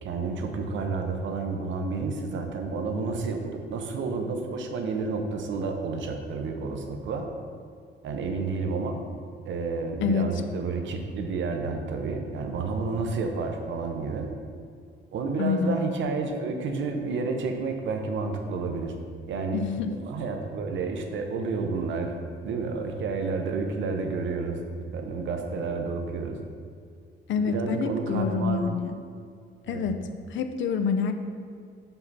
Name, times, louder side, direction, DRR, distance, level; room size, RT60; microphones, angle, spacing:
voice 1, 0.0-7.3 8.0-9.0 9.5-14.3 15.1-18.9 19.3-19.6 19.9-22.1 22.4-24.6 24.9-26.4 27.4-28.7 29.7-29.9, right 4 dB, 75° right, 4 dB, 0.8 m, -30 dB
voice 2, 15.4-15.8 19.5-19.9 27.3-28.9 29.7-30.0 30.3-31.1, left 5 dB, 75° left, 8 dB, 0.5 m, -27 dB
5.8 x 5.6 x 4.1 m, 2.2 s
cardioid pair, 150°, 20 cm